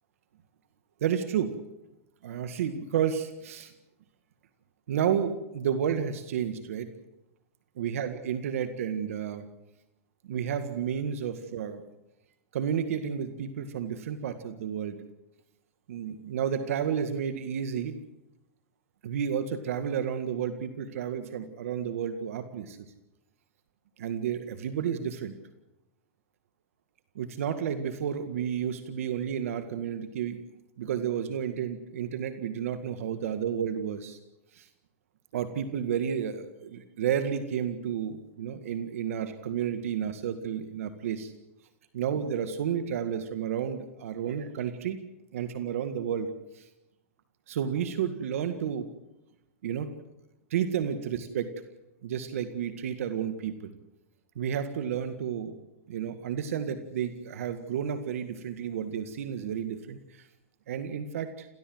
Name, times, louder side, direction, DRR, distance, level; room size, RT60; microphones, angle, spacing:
voice 1, 1.0-1.5 2.2-3.7 4.9-6.9 7.8-9.5 10.2-11.8 12.5-15.0 15.9-18.0 19.0-22.8 24.0-25.3 27.1-30.4 30.8-34.2 34.5-34.7 35.3-41.3 41.9-45.0 45.3-46.7 47.5-48.9 49.6-49.9 50.5-51.5 52.0-53.7 54.3-55.5 55.9-60.3 60.7-61.5, right 8 dB, 70° right, 10 dB, 1.9 m, -31 dB
28.0 x 15.5 x 7.8 m, 0.93 s
hypercardioid pair, 115°, 8 cm